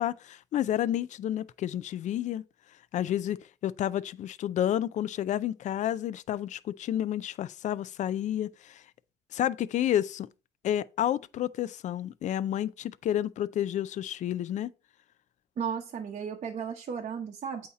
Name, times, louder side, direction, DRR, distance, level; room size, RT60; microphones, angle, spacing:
voice 1, 0.0-2.4 2.9-8.8 9.3-10.3 10.6-14.7, left 11 dB, 45° left, 0.4 m, -30 dB
voice 2, 15.6-17.7, right 7 dB, 45° right, 0.8 m, -34 dB
8.4 x 2.9 x 4.1 m
cardioid pair, 110°, 17 cm